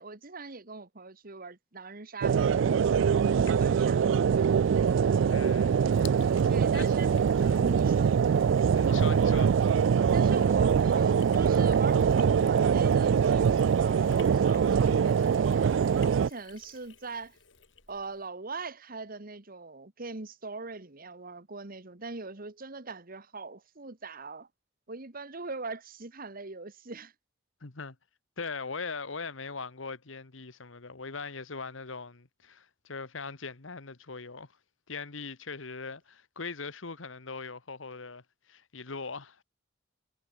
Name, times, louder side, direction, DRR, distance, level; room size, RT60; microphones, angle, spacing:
voice 1, 0.0-4.0 5.0-5.1 6.4-7.1 7.6-8.1 10.1-17.4 17.9-24.5 24.9-27.1, right 3 dB, 50° right, 1.7 m, -41 dB
sound 1, 2.2-16.3, right 7 dB, 70° right, 0.3 m, -23 dB
Sink (filling or washing), 3.2-18.3, left 7 dB, 65° left, 7.2 m, -55 dB
voice 2, 5.3-5.8 6.7-6.9 7.3-7.7 8.7-9.5 27.6-28.0 28.4-34.5 34.9-38.2 38.5-39.4, left 4 dB, 85° left, 1.5 m, -40 dB
head